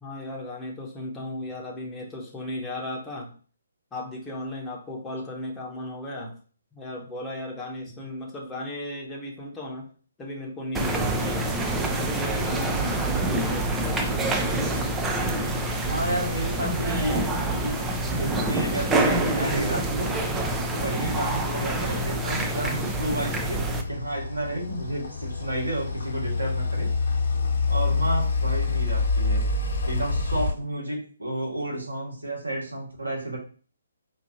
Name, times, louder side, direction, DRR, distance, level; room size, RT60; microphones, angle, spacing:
voice 1, 0.0-3.3 3.9-6.3 6.7-9.9 10.2-11.7 12.0-14.0, left 1 dB, 10° left, -2 dB, 0.9 m, -35 dB
sound 1, 10.7-23.8, right 1 dB, 10° right, 0.4 m, -26 dB
voice 2, 15.9-17.9 18.2-20.1 20.7-26.9 27.7-29.4 29.8-33.4, right 1 dB, 85° right, -2 dB, 1.6 m, -31 dB
sound 2, 23.5-30.5, left 4 dB, 60° left, 1.0 m, -26 dB
4.4 x 2.5 x 2.7 m, 0.40 s
figure-of-eight pair, 135°, 0 cm